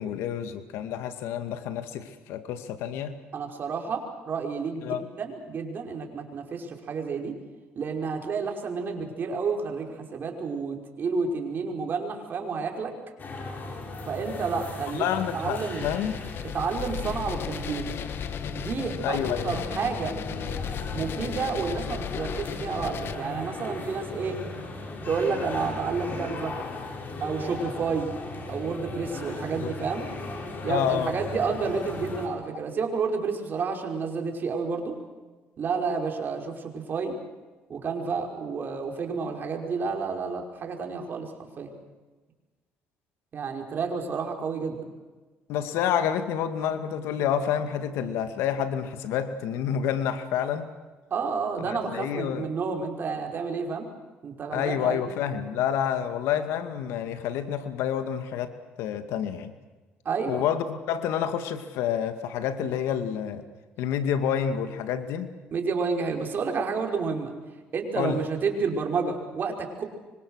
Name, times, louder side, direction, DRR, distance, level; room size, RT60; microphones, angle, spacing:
voice 1, 0.0-3.1 4.8-5.0 14.9-16.1 19.0-19.6 29.6-29.9 30.7-31.1 45.5-50.7 51.7-52.5 54.5-58.5 58.8-59.5 60.3-63.4 63.8-65.3 68.0-68.2, left 9 dB, 85° left, 9 dB, 2.2 m, -28 dB
voice 2, 3.3-7.3 7.8-13.0 14.0-15.1 15.3-15.9 16.5-17.9 18.5-20.2 20.9-24.4 25.1-26.5 27.2-28.1 28.5-30.1 30.6-35.0 35.6-37.2 37.7-41.3 41.6-41.7 43.3-44.8 51.1-53.9 54.2-55.1 60.1-60.4 65.5-67.3 67.7-69.8, right 5 dB, 50° right, 2 dB, 5.4 m, -30 dB
sound 1, 13.2-32.3, left 2 dB, 45° left, 6.7 m, -37 dB
sound 2, 15.8-23.1, left 9 dB, 60° left, 1.2 m, -36 dB
26.0 x 25.0 x 6.5 m, 1.3 s
cardioid pair, 90°, 4 cm